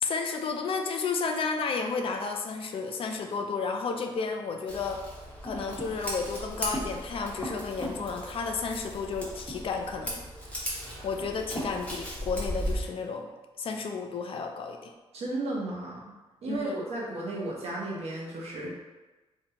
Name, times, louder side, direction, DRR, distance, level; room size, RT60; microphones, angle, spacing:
voice 1, 0.0-5.0 5.4-10.2 10.8-13.3 13.6-14.9 16.5-16.9, left 4 dB, 55° left, 4 dB, 0.4 m, -32 dB
Scissors, 4.7-12.9, equal, 10° left, 0.9 m, -36 dB
voice 2, 15.1-16.0 16.4-18.7, right 2 dB, 65° right, -3 dB, 0.8 m, -34 dB
2.8 x 2.1 x 2.7 m, 1.2 s
cardioid pair, 70°, 11 cm